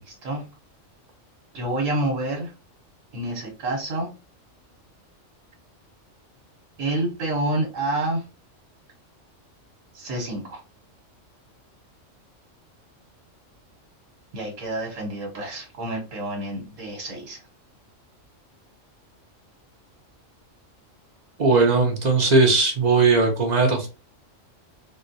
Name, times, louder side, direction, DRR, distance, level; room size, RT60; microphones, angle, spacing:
voice 1, 0.1-0.5 1.5-2.5 3.1-4.1 6.8-8.2 9.9-10.6 14.3-17.4, right 1 dB, 85° right, 0 dB, 1.3 m, -28 dB
voice 2, 21.4-23.9, right 3 dB, 45° right, 2 dB, 0.6 m, -18 dB
3.7 x 2.0 x 2.6 m, 0.31 s
omnidirectional pair, 1.3 m